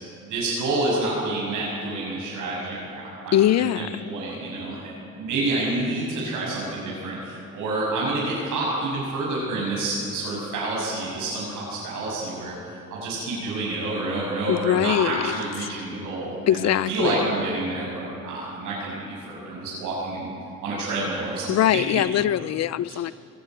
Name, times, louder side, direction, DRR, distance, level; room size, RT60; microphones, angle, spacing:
voice 1, 0.2-4.9 5.2-12.5 12.9-20.3 20.6-22.0 22.9-23.0, right 2 dB, 85° right, -5 dB, 6.6 m, -28 dB
voice 2, 3.3-4.1 14.5-15.3 15.6-15.7 16.5-17.3 21.5-23.1, left 11 dB, 60° left, 18 dB, 0.5 m, -22 dB
21.5 x 15.5 x 9.5 m, 2.7 s
cardioid pair, 90°, 30 cm